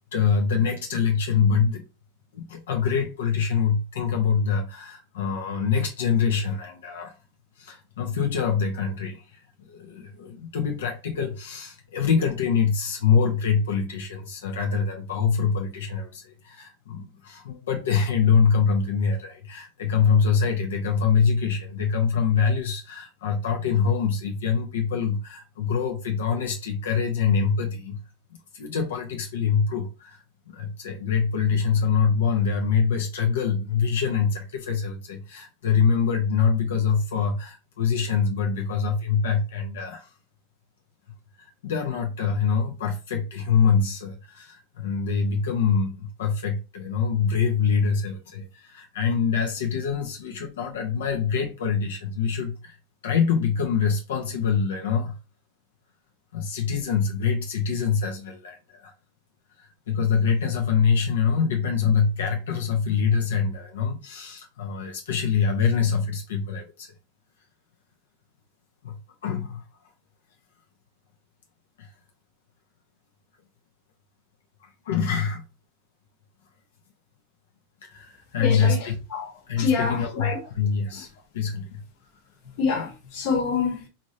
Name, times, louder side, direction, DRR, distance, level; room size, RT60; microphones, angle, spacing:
voice 1, 0.1-1.8 2.3-7.1 7.6-28.0 28.5-40.1 41.4-52.8 53.0-55.2 56.3-58.9 59.6-66.9 68.8-69.0 69.2-69.6 71.8-71.9 74.6-75.4 77.8-78.9 79.5-81.8 82.8-82.9, left 6 dB, 90° left, 0.7 m, -25 dB
voice 2, 78.4-79.3 79.6-80.4 82.6-83.8, left 5 dB, 45° left, 1.2 m, -26 dB
3.1 x 2.6 x 2.6 m
supercardioid pair, 155°, 0 cm